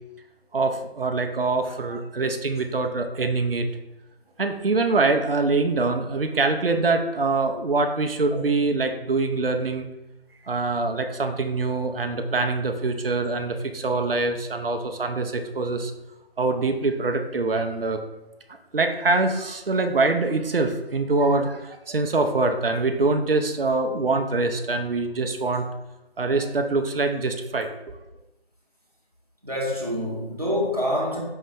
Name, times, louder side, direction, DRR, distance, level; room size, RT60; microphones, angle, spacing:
voice 1, 0.5-3.7 4.4-9.9 10.5-15.9 16.4-18.0 18.5-25.7 26.2-27.7, right 3 dB, 65° right, 6 dB, 0.5 m, -24 dB
voice 2, 29.4-31.2, left 1 dB, 40° right, -3 dB, 0.8 m, -26 dB
5.3 x 2.1 x 3.6 m, 0.99 s
figure-of-eight pair, 170°, 32 cm